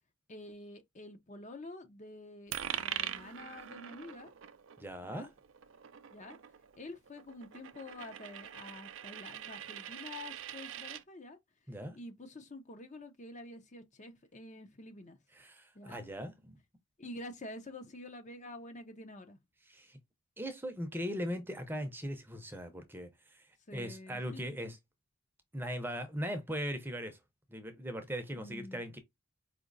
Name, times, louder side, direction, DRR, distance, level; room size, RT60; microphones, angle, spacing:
voice 1, 0.3-4.3 5.0-5.3 6.1-6.4 6.8-11.4 11.9-15.2 15.7-16.0 17.0-19.4 23.7-24.4 28.3-28.8, left 2 dB, 35° left, 0.6 m, -48 dB
Coin (dropping), 2.5-11.0, right 10 dB, 60° right, 0.4 m, -43 dB
voice 2, 4.8-5.3 11.7-12.0 15.4-16.6 19.7-20.0 20.4-23.1 23.7-24.8 25.5-27.2 27.5-29.0, equal, 10° right, 0.7 m, -39 dB
5.0 x 2.7 x 2.6 m
head